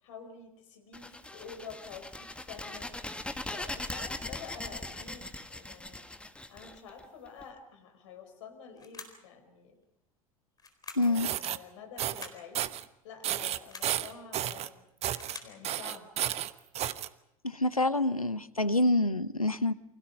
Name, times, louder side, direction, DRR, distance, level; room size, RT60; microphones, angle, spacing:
voice 1, 0.0-2.9 3.5-6.0 6.5-9.8 11.0-12.7 13.0-14.8 15.4-16.1, left 6 dB, 60° left, 7 dB, 5.0 m, -48 dB
sound 1, 0.9-7.4, left 2 dB, 5° left, 1.8 m, -40 dB
sound 2, 8.8-9.3 10.6-11.2 12.0-12.5 13.4-14.0 14.9-15.6, left 5 dB, 20° left, 4.2 m, -47 dB
voice 2, 11.0-11.3 17.4-19.7, left 2 dB, 90° left, 16 dB, 0.9 m, -27 dB
sound 3, 11.0-11.6 12.0-12.3 12.5-12.8 13.2-14.7 15.0-15.4 15.6-17.1, right 12 dB, 35° right, 1.1 m, -32 dB
29.5 x 25.0 x 5.3 m, 0.82 s
figure-of-eight pair, 75°, 18 cm